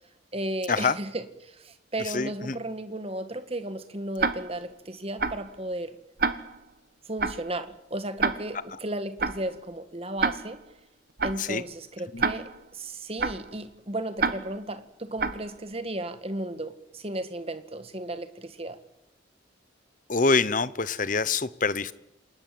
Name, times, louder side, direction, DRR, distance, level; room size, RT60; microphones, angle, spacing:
voice 1, 0.3-6.0 7.1-10.6 11.2-18.8, right 1 dB, 30° right, 10 dB, 1.7 m, -34 dB
voice 2, 2.1-2.6 11.4-11.6 12.1-12.2 20.1-21.9, left 4 dB, 45° left, 16 dB, 1.0 m, -25 dB
Tick-tock, 4.2-4.7 5.2-5.5 6.2-6.7 7.2-7.5 8.2-8.7 9.2-9.5 10.2-10.7 11.2-11.5 12.2-12.7 13.2-13.5 14.2-14.7 15.2-15.5, right 4 dB, 50° right, 1.3 m, -29 dB
28.5 x 19.0 x 7.8 m, 0.85 s
head